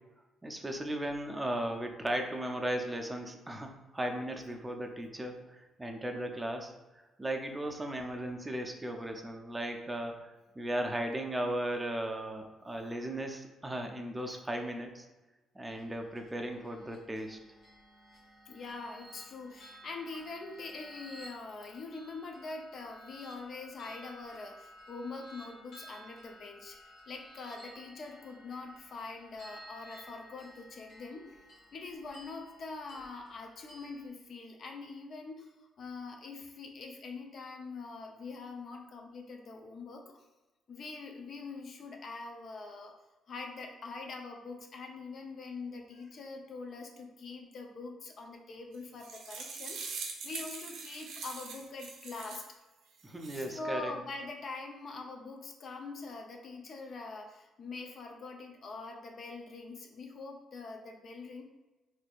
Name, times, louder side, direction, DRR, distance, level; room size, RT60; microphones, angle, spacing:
voice 1, 0.4-6.7 7.2-15.1 15.6-17.4 53.0-53.9, right 1 dB, 15° right, 3 dB, 0.5 m, -36 dB
sound 1, 15.7-34.1, equal, 80° left, 1.3 m, -54 dB
voice 2, 18.5-31.3 31.7-40.1 40.7-42.9 43.3-52.4 53.3-61.4, left 3 dB, 55° left, 2 dB, 0.5 m, -44 dB
sound 2, 48.7-52.5 53.0-53.5, right 4 dB, 80° right, 0.6 m, -43 dB
4.2 x 2.6 x 2.4 m, 1.1 s
cardioid pair, 90°, 0 cm